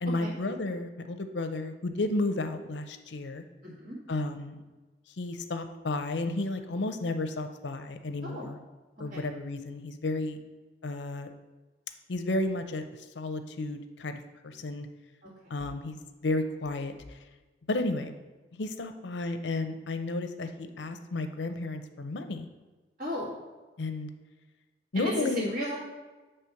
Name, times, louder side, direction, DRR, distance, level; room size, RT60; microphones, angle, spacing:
voice 1, 0.0-3.4 4.1-4.6 5.2-8.6 9.0-10.4 10.8-11.3 12.1-12.8 13.1-14.9 15.5-16.0 16.2-17.2 17.7-18.1 18.5-22.5 23.8-24.1 24.9-25.5, left 2 dB, 85° left, 8 dB, 0.6 m, -32 dB
voice 2, 3.6-4.0 8.2-8.5 9.1-9.2 15.2-15.3 23.0-23.3 24.9-25.8, left 1 dB, 40° right, -10 dB, 2.0 m, -34 dB
7.7 x 3.3 x 5.7 m, 1.2 s
head